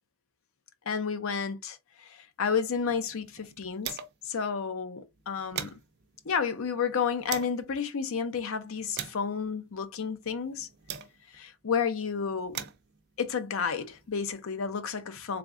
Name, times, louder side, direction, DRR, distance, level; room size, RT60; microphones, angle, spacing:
voice 1, 0.9-4.0 4.2-5.8 6.3-10.7 11.3-12.7 13.2-15.4, left 6 dB, 65° left, 0.5 m, -31 dB
sound 1, 2.6-4.4 4.7-4.8 5.1-7.7 8.3-11.5 12.2-14.4, right 9 dB, 50° right, 0.5 m, -43 dB
3.6 x 3.5 x 2.5 m
head